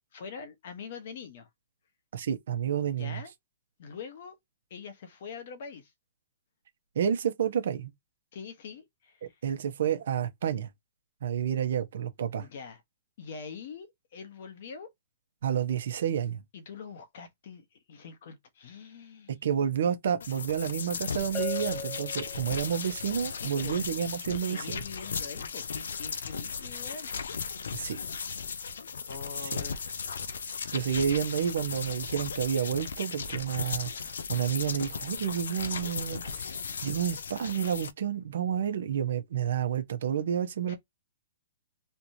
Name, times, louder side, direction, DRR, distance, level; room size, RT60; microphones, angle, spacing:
voice 1, 0.1-1.5 3.0-3.3 3.8-4.3 4.7-5.9 8.3-9.2 12.4-12.8 13.2-13.9 14.1-14.9 16.5-19.3 23.3-23.8 24.3-27.1 29.1-29.9 40.7-40.8, left 5 dB, 45° left, 1.2 m, -43 dB
voice 2, 2.1-3.2 6.9-7.9 9.4-10.7 11.2-12.5 15.4-16.4 19.4-24.8 27.7-28.0 30.7-36.5 36.8-40.8, right 8 dB, 60° right, 1.0 m, -30 dB
sound 1, 20.2-37.9, left 5 dB, 90° left, 0.6 m, -36 dB
Bell, 21.3-23.0, left 4 dB, 5° left, 0.5 m, -37 dB
3.4 x 3.0 x 2.7 m
hypercardioid pair, 170°, 0 cm